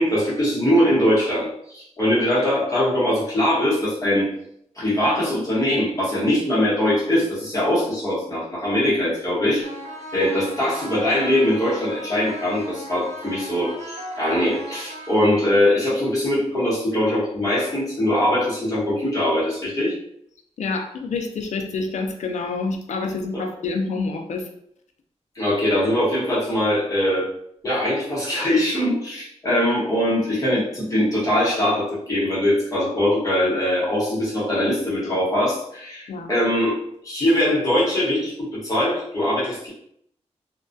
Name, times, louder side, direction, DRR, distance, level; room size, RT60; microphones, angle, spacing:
voice 1, 0.0-4.3 4.8-9.6 10.1-19.9 23.3-23.4 25.3-27.3 27.6-36.8 37.0-39.7, left 1 dB, 30° left, -8 dB, 1.0 m, -22 dB
sound 1, 9.6-15.6, right 1 dB, 90° right, 0.4 m, -37 dB
voice 2, 20.6-24.5 36.1-36.3, left 3 dB, 90° left, 4 dB, 0.4 m, -27 dB
2.2 x 2.2 x 2.5 m, 0.70 s
wide cardioid pair, 170°, 12 cm